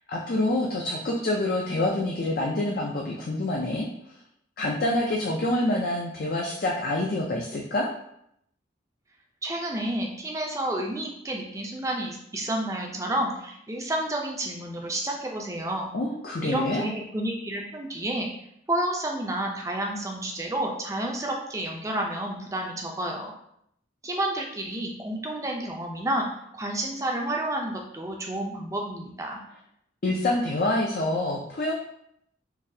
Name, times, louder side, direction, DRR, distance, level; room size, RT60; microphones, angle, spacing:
voice 1, 0.1-3.9 4.6-7.9 15.9-16.8 30.0-31.7, left 1 dB, 50° left, -2 dB, 0.4 m, -26 dB
voice 2, 9.4-15.9 16.4-18.3 18.7-23.3 24.0-26.3 26.5-29.4, right 1 dB, 15° right, 1 dB, 0.5 m, -30 dB
3.9 x 2.7 x 2.7 m, 0.73 s
head